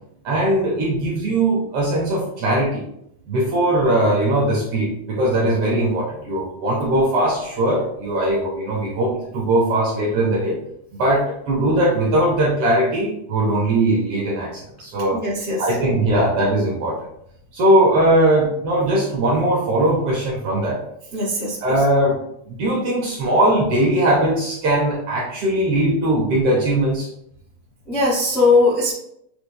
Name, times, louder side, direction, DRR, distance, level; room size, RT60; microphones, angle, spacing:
voice 1, 0.2-2.8 3.3-10.6 10.9-15.2 15.6-17.1 17.5-20.8 21.6-22.2 22.5-27.1, right 1 dB, 70° right, -2 dB, 1.4 m, -20 dB
voice 2, 15.1-15.6 21.1-21.6 27.9-28.9, left 3 dB, 50° left, -9 dB, 0.7 m, -19 dB
6.7 x 3.3 x 2.2 m, 0.75 s
omnidirectional pair, 3.3 m